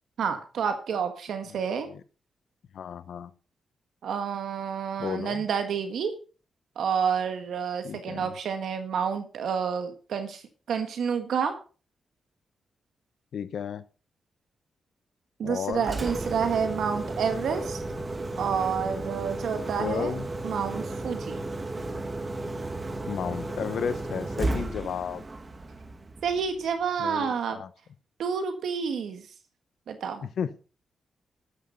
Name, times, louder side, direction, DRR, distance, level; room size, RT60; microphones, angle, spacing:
voice 1, 0.2-1.9 4.0-6.1 6.8-11.6 15.4-17.8 18.4-20.2 20.4-21.3 26.2-27.6 28.2-29.3 29.9-30.2, right 6 dB, 75° right, 6 dB, 1.8 m, -29 dB
voice 2, 2.7-3.3 5.0-5.5 7.8-8.3 13.3-13.8 15.4-15.8 19.8-20.3 23.1-25.2 27.0-27.7 30.2-30.6, left 8 dB, 70° left, 14 dB, 1.1 m, -33 dB
Engine, 15.7-26.7, right 2 dB, 25° right, 1.6 m, -34 dB
13.5 x 11.0 x 4.1 m, 0.36 s
wide cardioid pair, 135°, 0 cm